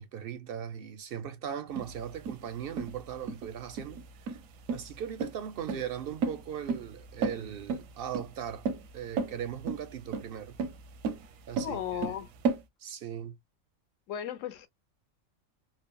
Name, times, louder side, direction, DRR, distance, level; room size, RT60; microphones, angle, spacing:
voice 1, 0.0-4.0 4.3-4.4 4.7-8.7 8.9-10.6 11.5-12.1 12.8-13.4, right 9 dB, 65° right, 0.6 m, -39 dB
sound 1, 1.8-12.6, right 5 dB, 85° right, 1.0 m, -34 dB
voice 2, 11.6-12.3 14.1-14.7, left 9 dB, 75° left, 1.0 m, -35 dB
3.3 x 2.0 x 2.2 m
omnidirectional pair, 1.4 m